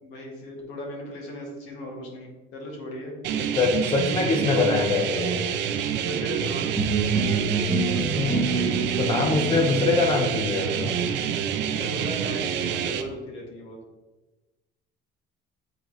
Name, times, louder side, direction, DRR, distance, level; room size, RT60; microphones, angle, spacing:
voice 1, 0.0-3.6 6.1-6.8 9.2-9.6 11.7-13.8, left 1 dB, 75° left, 0 dB, 1.8 m, -37 dB
sound 1, 3.2-13.0, right 8 dB, 60° right, 0.6 m, -27 dB
voice 2, 3.6-5.4 7.8-8.4 9.0-10.9, left 4 dB, 25° left, 3 dB, 0.5 m, -24 dB
sound 2, 6.7-12.4, right 3 dB, ahead, 0.9 m, -28 dB
8.4 x 3.9 x 3.0 m, 1.2 s
cardioid pair, 165°, 20 cm